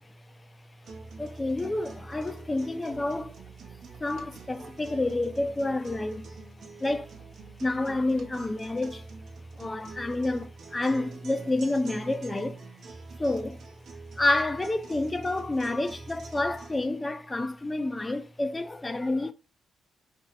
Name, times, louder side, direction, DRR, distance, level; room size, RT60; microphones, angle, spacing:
sound 1, 0.8-16.8, right 4 dB, 65° right, 0.7 m, -45 dB
voice 1, 1.2-3.4 4.0-6.3 6.8-7.1 7.6-9.1 9.6-12.6 13.2-13.6 14.2-19.3, left 2 dB, 20° left, 0.4 m, -29 dB
2.6 x 2.0 x 3.9 m
cardioid pair, 90°, 0 cm